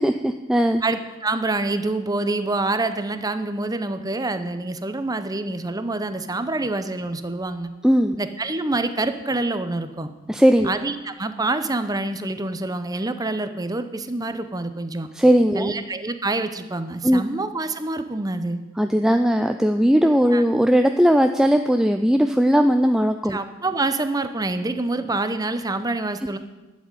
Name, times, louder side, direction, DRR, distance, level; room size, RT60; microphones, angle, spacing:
voice 1, 0.0-0.8 7.8-8.2 10.3-10.7 15.1-15.7 17.0-17.2 18.8-23.4, equal, 5° right, 6 dB, 0.4 m, -18 dB
voice 2, 0.8-7.7 8.2-10.1 10.6-15.1 15.6-18.6 20.3-20.4 23.3-26.4, right 2 dB, 20° right, 9 dB, 0.8 m, -26 dB
12.0 x 7.4 x 9.0 m, 1.1 s
head